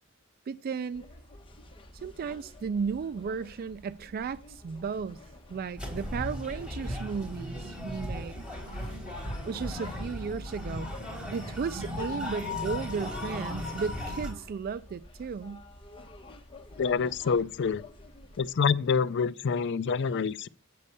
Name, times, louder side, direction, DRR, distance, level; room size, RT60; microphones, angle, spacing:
voice 1, 0.5-1.0 1.9-5.2 5.5-8.4 8.8-8.9 9.5-10.9 11.3-15.6, right 5 dB, 45° right, 0.3 m, -34 dB
sound 1, 0.9-18.5, left 1 dB, 25° left, 1.3 m, -49 dB
sound 2, 5.8-14.3, left 1 dB, 5° right, 4.0 m, -36 dB
voice 2, 16.8-17.8 18.4-20.5, left 5 dB, 55° left, 0.4 m, -27 dB
8.6 x 5.3 x 6.7 m
head